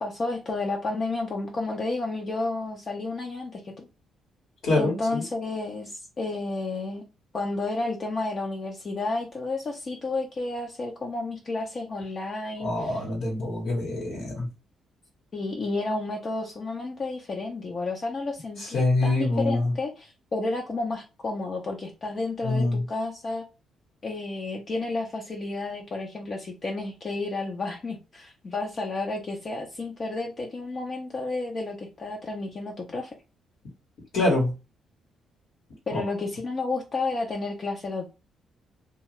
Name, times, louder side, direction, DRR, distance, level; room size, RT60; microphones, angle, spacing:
voice 1, 0.0-3.9 4.8-7.0 7.3-13.0 15.3-23.4 24.0-33.1 35.9-38.1, left 3 dB, 40° left, 0 dB, 0.6 m, -31 dB
voice 2, 4.6-5.2 12.6-14.5 18.6-19.7 22.4-22.8 34.1-34.5 35.9-36.0, left 2 dB, 75° left, -2 dB, 1.2 m, -25 dB
2.7 x 2.3 x 3.1 m, 0.29 s
cardioid pair, 90°, 0 cm